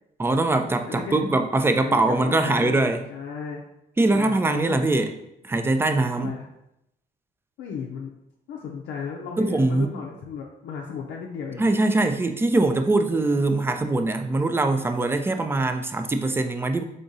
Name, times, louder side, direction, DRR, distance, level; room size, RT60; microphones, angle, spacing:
voice 1, 0.2-3.0 4.0-5.1 5.4-6.3 9.4-9.9 11.6-16.8, right 2 dB, 15° right, 7 dB, 0.3 m, -22 dB
voice 2, 0.9-1.4 1.8-3.6 4.0-4.9 6.2-6.5 7.6-8.1 8.5-11.7, left 6 dB, 80° left, -1 dB, 0.5 m, -35 dB
3.6 x 3.6 x 2.7 m, 0.82 s
cardioid pair, 95°, 17 cm